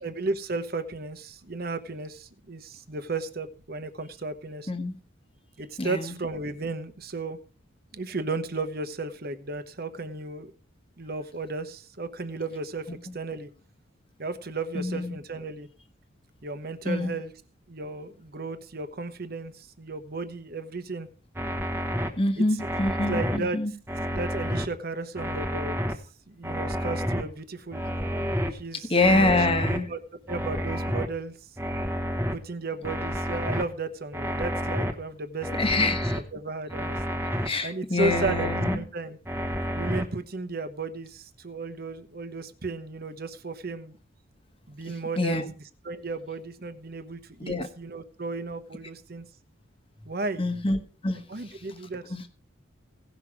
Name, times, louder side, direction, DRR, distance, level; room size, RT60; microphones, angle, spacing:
voice 1, 0.0-4.7 5.6-7.4 7.9-10.5 11.0-13.5 14.2-15.7 16.4-17.3 17.7-21.1 22.4-22.7 23.1-23.8 24.1-25.8 26.3-27.8 28.5-29.4 29.9-30.0 30.3-31.5 32.3-36.0 36.3-37.2 37.6-39.2 39.7-44.0 44.7-45.4 45.8-49.2 50.0-50.5 51.3-52.2, right 3 dB, 45° right, 10 dB, 1.0 m, -34 dB
voice 2, 5.8-6.1 14.7-15.2 16.9-17.2 22.2-23.7 28.9-29.9 35.6-36.2 37.4-38.8 45.2-45.5 47.5-47.7 50.4-51.2 52.1-52.2, left 2 dB, 25° left, 8 dB, 1.1 m, -26 dB
sound 1, 21.4-22.1 22.6-23.4 23.9-24.7 25.2-25.9 26.4-27.2 27.7-28.5 29.0-29.8 30.3-31.1 31.6-32.3 32.8-33.6 34.1-34.9 35.4-36.2 36.7-37.5 38.0-38.8 39.3-40.0, equal, 10° right, 1.1 m, -29 dB
17.0 x 6.2 x 4.8 m, 0.39 s
head